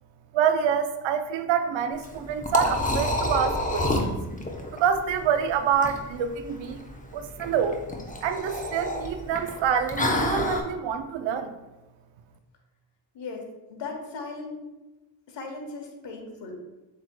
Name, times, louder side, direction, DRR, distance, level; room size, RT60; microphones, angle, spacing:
voice 1, 0.3-4.2 4.7-6.8 7.1-7.8 8.2-11.5, right 7 dB, 65° right, 9 dB, 0.6 m, -26 dB
Liquid, 1.9-10.6, left 1 dB, 15° left, 0.8 m, -29 dB
voice 2, 13.7-14.6 15.3-16.6, left 4 dB, 60° left, 2 dB, 1.2 m, -37 dB
7.4 x 3.0 x 2.3 m, 1.1 s
supercardioid pair, 50°, 50 cm